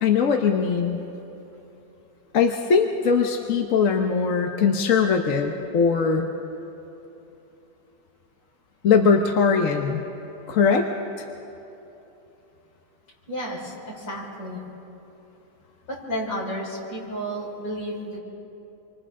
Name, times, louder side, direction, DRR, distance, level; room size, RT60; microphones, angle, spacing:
voice 1, 0.0-1.0 2.3-6.3 8.8-10.0 10.5-10.9, left 5 dB, 55° left, 3 dB, 1.2 m, -20 dB
voice 2, 13.3-14.6 15.9-18.2, equal, 75° left, -4 dB, 5.4 m, -32 dB
28.5 x 25.0 x 3.7 m, 3.0 s
omnidirectional pair, 1.9 m